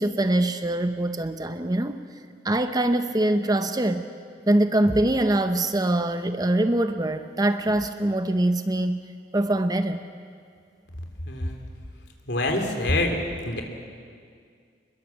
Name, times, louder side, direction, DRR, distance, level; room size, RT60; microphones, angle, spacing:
voice 1, 0.0-2.0 2.4-4.1 4.5-9.0 9.3-10.0, right 1 dB, 20° right, 8 dB, 0.8 m, -23 dB
voice 2, 11.3-11.6 12.3-13.2 13.4-13.6, left 2 dB, 80° left, 4 dB, 3.3 m, -25 dB
25.5 x 21.5 x 7.4 m, 2.2 s
head